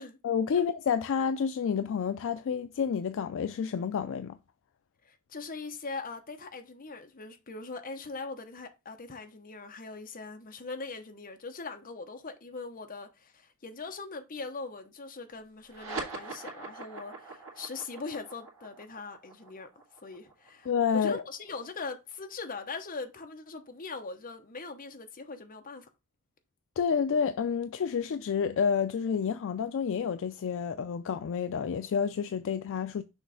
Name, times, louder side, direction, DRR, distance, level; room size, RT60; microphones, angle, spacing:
voice 1, 0.2-4.4 20.7-21.2 26.8-33.0, left 6 dB, 60° left, 0.4 m, -29 dB
voice 2, 5.0-19.7 20.0-25.9, left 4 dB, 40° left, 0.9 m, -41 dB
backwards swoosh with slow delay, 15.6-22.5, right 3 dB, 70° right, 1.9 m, -43 dB
6.4 x 3.1 x 4.9 m
head